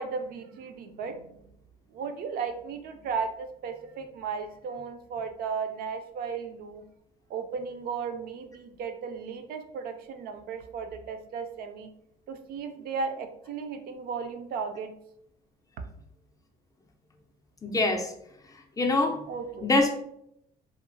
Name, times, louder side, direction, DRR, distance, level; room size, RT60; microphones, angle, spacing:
voice 1, 0.0-1.5 1.9-6.8 7.3-11.9 12.3-14.9 19.3-19.7, right 5 dB, 65° right, 6 dB, 0.4 m, -35 dB
voice 2, 17.6-18.1 18.8-19.3 19.6-20.0, left 2 dB, 20° left, 2 dB, 0.4 m, -24 dB
2.7 x 2.4 x 2.6 m, 0.75 s
cardioid pair, 110°, 17 cm